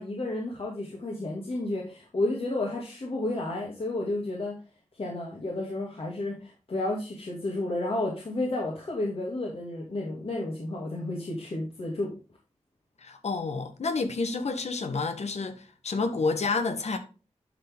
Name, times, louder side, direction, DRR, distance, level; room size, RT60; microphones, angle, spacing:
voice 1, 0.0-4.6 4.9-12.1, left 2 dB, 55° left, 2.2 m, -31 dB
voice 2, 13.0-17.0, left 4 dB, 70° left, 1.4 m, -29 dB
11.5 x 4.1 x 3.5 m
wide cardioid pair, 75°, 12 cm